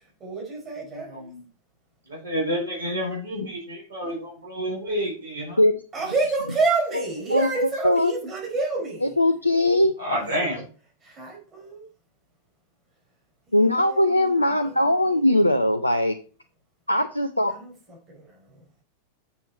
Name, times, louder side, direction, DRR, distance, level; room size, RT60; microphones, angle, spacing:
voice 1, 0.2-1.3 5.9-9.1 10.2-10.4 11.0-11.8 13.5-15.2 17.5-18.3, right 3 dB, 25° right, -1 dB, 4.5 m, -29 dB
voice 2, 1.1-1.4 2.1-5.6 10.0-10.6, equal, 70° right, -2 dB, 4.6 m, -29 dB
voice 3, 9.0-9.9 13.5-16.2 16.9-17.5, left 1 dB, 85° left, 7 dB, 0.6 m, -20 dB
7.3 x 7.0 x 4.1 m, 0.37 s
figure-of-eight pair, 90°, 0 cm